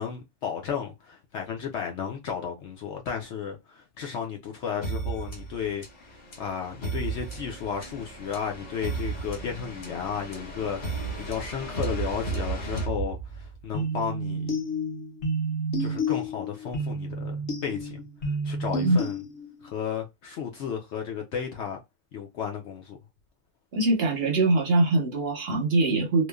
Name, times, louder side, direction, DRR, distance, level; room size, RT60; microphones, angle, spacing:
voice 1, 0.0-14.5 15.8-18.0 18.4-19.2 19.6-21.8 22.1-23.0, left 7 dB, 70° left, 0.6 m, -33 dB
sound 1, 4.8-13.6, right 4 dB, 35° left, 0.9 m, -34 dB
sound 2, 13.7-19.7, right 1 dB, 50° left, 1.1 m, -30 dB
voice 2, 23.7-26.3, right 2 dB, 50° right, 0.8 m, -23 dB
3.0 x 2.1 x 2.2 m
omnidirectional pair, 1.7 m